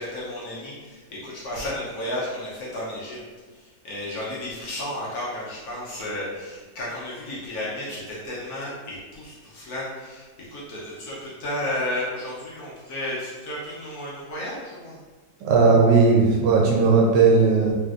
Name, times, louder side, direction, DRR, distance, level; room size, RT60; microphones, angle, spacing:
voice 1, 0.0-3.2 3.5-15.0, left 1 dB, 65° left, -6 dB, 1.0 m, -33 dB
voice 2, 15.4-17.7, right 4 dB, 75° right, -1 dB, 1.2 m, -17 dB
3.2 x 2.5 x 2.4 m, 1.4 s
omnidirectional pair, 2.0 m